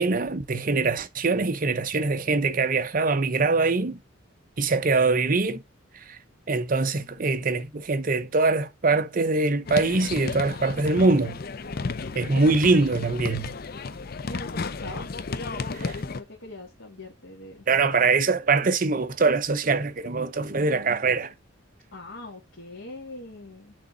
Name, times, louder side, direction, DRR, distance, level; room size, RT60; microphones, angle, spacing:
voice 1, 0.0-4.0 4.6-5.6 5.9-6.2 6.5-11.4 12.1-13.5 17.7-21.3, right 3 dB, 45° right, 0.7 m, -23 dB
sound 1, 9.7-16.2, left 4 dB, 50° left, 0.6 m, -33 dB
voice 2, 14.3-15.1 15.4-17.7 21.9-23.7, left 1 dB, 70° left, 2.1 m, -41 dB
6.4 x 4.1 x 3.9 m
head